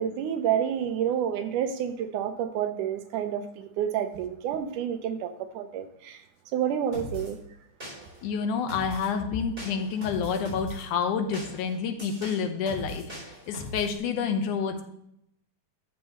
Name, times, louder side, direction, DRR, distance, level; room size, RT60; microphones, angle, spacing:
voice 1, 0.0-5.3 5.6-6.2 6.5-7.4, right 9 dB, 85° right, 8 dB, 2.3 m, -29 dB
sound 1, 6.9-7.3 7.8-8.3 8.7-9.1 9.6-10.8 11.3-14.0, left 1 dB, 15° right, 3.9 m, -39 dB
voice 2, 8.2-13.0 13.5-14.8, left 6 dB, 80° left, 6 dB, 2.4 m, -28 dB
12.0 x 7.3 x 3.0 m, 0.75 s
omnidirectional pair, 3.6 m